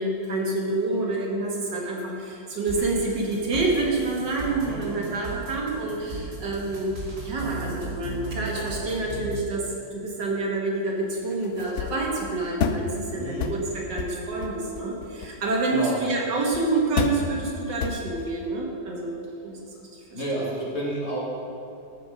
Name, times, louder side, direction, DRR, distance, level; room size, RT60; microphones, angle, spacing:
voice 1, 0.0-6.9 7.2-9.7 9.9-19.2 19.4-19.6 20.1-20.2, right 2 dB, 70° right, -2 dB, 2.2 m, -27 dB
sound 1, 2.7-9.4, right 2 dB, 45° right, 2.4 m, -36 dB
voice 2, 4.5-5.1 13.1-13.6 15.7-16.0 20.1-21.2, right 1 dB, 35° left, -5 dB, 2.0 m, -31 dB
sound 2, 11.1-12.9 13.4-13.6 14.0-15.5 16.2-16.3 16.5-16.7 17.0-17.3 17.8-18.3, left 6 dB, 80° left, 0.6 m, -30 dB
14.0 x 5.6 x 5.2 m, 2.7 s
omnidirectional pair, 2.0 m